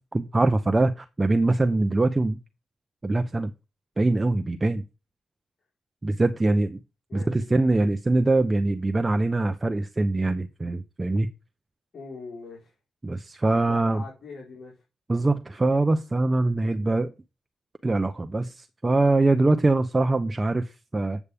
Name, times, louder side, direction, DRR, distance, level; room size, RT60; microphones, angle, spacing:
voice 1, 0.0-2.4 3.0-3.5 4.0-4.8 6.0-6.8 7.1-11.3 13.0-14.0 15.1-17.1 17.8-21.2, right 2 dB, 25° right, 0.9 m, -23 dB
voice 2, 7.1-7.5 11.9-12.7 13.4-14.7, left 3 dB, 55° left, 4.8 m, -42 dB
8.4 x 8.0 x 3.7 m
supercardioid pair, 55°, 0 cm